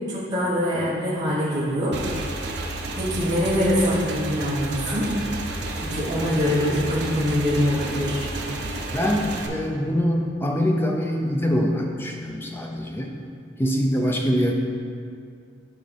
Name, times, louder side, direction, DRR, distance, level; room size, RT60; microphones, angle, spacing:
voice 1, 0.1-2.0 3.0-5.1 5.8-8.2, equal, 20° right, -10 dB, 1.2 m, -24 dB
Motorcycle / Engine, 1.9-9.5, right 2 dB, 60° right, 0.6 m, -31 dB
sound 1, 4.8-5.5 6.1-8.3 8.7-9.5, left 1 dB, 65° left, 1.7 m, -38 dB
voice 2, 8.9-13.1 13.6-14.5, equal, 10° left, 1 dB, 0.5 m, -24 dB
10.5 x 3.8 x 3.4 m, 2.3 s
head